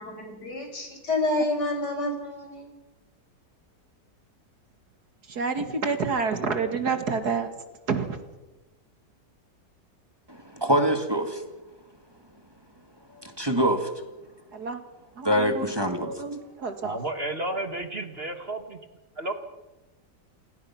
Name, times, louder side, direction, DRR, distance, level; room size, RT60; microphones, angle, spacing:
voice 1, 0.0-2.7, left 2 dB, 70° left, 4 dB, 5.6 m, -29 dB
voice 2, 5.3-7.5 7.9-8.1 14.5-14.8 15.2-15.7 16.0-17.0, right 5 dB, 65° right, 7 dB, 2.4 m, -28 dB
voice 3, 10.3-11.4 13.2-13.9 15.2-16.1, equal, 15° right, 5 dB, 2.0 m, -24 dB
voice 4, 16.8-18.8 19.2-19.3, right 2 dB, 35° right, 7 dB, 1.6 m, -32 dB
28.5 x 17.5 x 5.9 m, 1.1 s
omnidirectional pair, 1.8 m